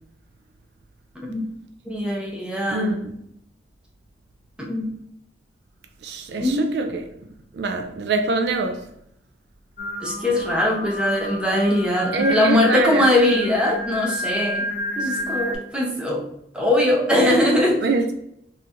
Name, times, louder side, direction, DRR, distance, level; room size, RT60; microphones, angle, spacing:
voice 1, 1.2-1.5 1.9-2.9 4.6-4.9 6.3-6.7 10.0-14.6 15.0-16.3 16.5-17.8, left 1 dB, 5° right, 0.7 m, -21 dB
voice 2, 2.7-3.1 6.0-7.0 7.5-8.8 12.1-13.1 17.8-18.1, right 3 dB, 70° right, 0.4 m, -24 dB
Singing, 9.8-15.6, left 1 dB, 45° left, 0.5 m, -30 dB
2.9 x 2.7 x 3.5 m
head